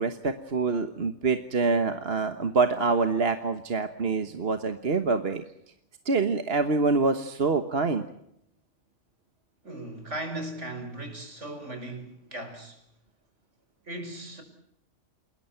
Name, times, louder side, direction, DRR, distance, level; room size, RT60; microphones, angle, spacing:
voice 1, 0.0-5.4 6.0-8.1, right 4 dB, 55° right, 1.5 m, -26 dB
voice 2, 9.6-12.8 13.8-14.4, right 1 dB, 80° right, 5.7 m, -37 dB
29.5 x 21.0 x 5.9 m
omnidirectional pair, 1.2 m